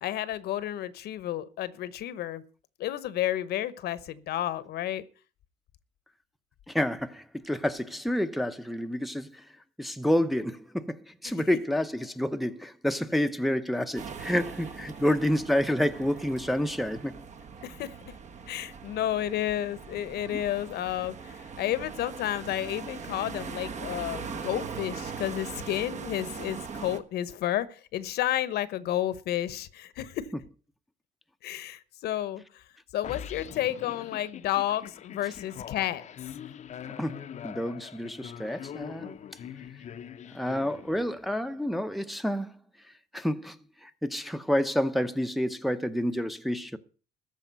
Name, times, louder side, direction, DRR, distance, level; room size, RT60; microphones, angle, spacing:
voice 1, 0.0-2.4 2.8-5.0 11.2-11.3 15.0-15.1 17.6-17.9 18.5-30.3 31.4-32.6 32.9-36.0 39.1-39.2, left 12 dB, 70° left, 1.0 m, -31 dB
voice 2, 6.7-9.3 9.8-11.0 11.2-17.1 20.3-20.4 37.0-39.2 40.3-42.5 43.1-43.6 43.8-46.8, equal, ahead, 0.8 m, -29 dB
sound 1, 14.0-27.0, right 5 dB, 45° right, 1.2 m, -41 dB
sound 2, 33.0-41.3, left 9 dB, 45° left, 0.7 m, -43 dB
14.0 x 5.0 x 9.2 m
cardioid pair, 110°, 17 cm